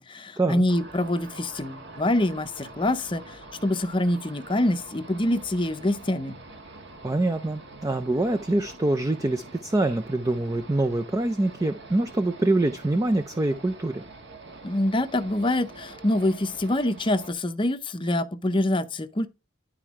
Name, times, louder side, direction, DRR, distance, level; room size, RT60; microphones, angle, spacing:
voice 1, 0.0-6.4 14.6-19.3, left 1 dB, 25° left, 0.6 m, -25 dB
sound 1, 0.7-17.3, right 2 dB, 55° right, 1.5 m, -45 dB
voice 2, 7.0-14.0, right 2 dB, 15° right, 0.4 m, -25 dB
11.0 x 4.4 x 3.6 m
head